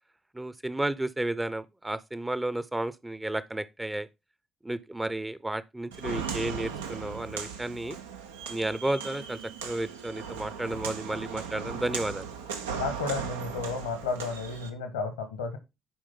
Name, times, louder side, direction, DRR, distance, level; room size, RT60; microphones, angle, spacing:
voice 1, 0.3-4.1 4.6-8.0 8.5-12.3, right 1 dB, 15° right, 0.7 m, -32 dB
Walk footsteps, 5.9-14.7, right 6 dB, 80° right, 0.8 m, -37 dB
voice 2, 12.8-15.6, left 4 dB, 80° left, 1.5 m, -32 dB
10.0 x 5.0 x 3.8 m
figure-of-eight pair, 40°, 0 cm